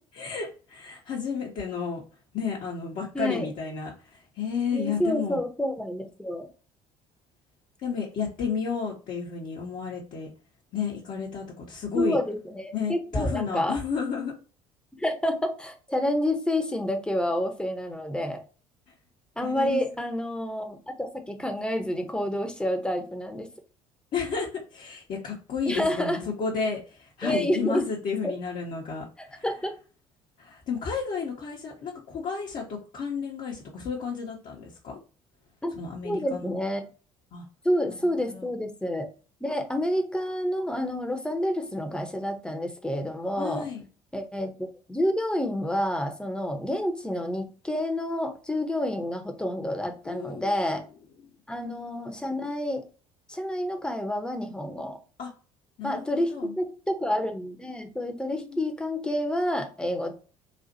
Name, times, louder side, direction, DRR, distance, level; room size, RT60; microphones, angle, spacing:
voice 1, 0.2-2.0 2.3-5.4 7.8-10.3 10.7-12.2 12.7-14.3 19.4-19.8 24.1-29.5 30.4-35.0 35.7-36.5 37.3-37.5 37.9-38.5 43.4-43.8 50.0-50.8 55.2-55.3 55.8-56.5 58.3-58.6, left 5 dB, 50° left, -3 dB, 0.9 m, -32 dB
voice 2, 3.1-3.5 4.7-6.5 11.9-13.8 15.0-18.4 19.4-23.5 25.7-26.2 27.2-27.9 28.2-28.3 29.4-29.7 35.6-35.7 36.0-36.8 37.6-39.1 39.4-43.7 44.1-50.8 51.5-52.8 53.3-55.0 55.8-60.1, left 1 dB, 5° left, 5 dB, 0.9 m, -29 dB
4.1 x 2.4 x 2.7 m, 0.37 s
hypercardioid pair, 60°, 18 cm